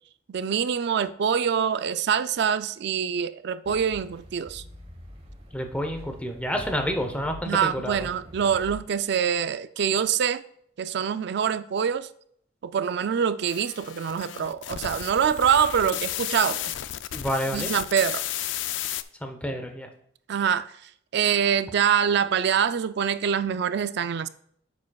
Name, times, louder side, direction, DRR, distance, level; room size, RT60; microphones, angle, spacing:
voice 1, 0.3-4.6 7.5-10.4 10.8-12.1 12.6-16.7 17.5-18.2 20.3-20.7 21.1-24.3, right 7 dB, 60° right, 0.4 m, -25 dB
sound 1, 3.6-8.8, equal, 30° right, 1.2 m, -44 dB
voice 2, 5.5-8.1 17.1-17.7 19.2-19.9, equal, 5° left, 0.8 m, -29 dB
sound 2, 13.5-19.0, left 12 dB, 70° left, 0.4 m, -33 dB
8.9 x 7.2 x 2.3 m
head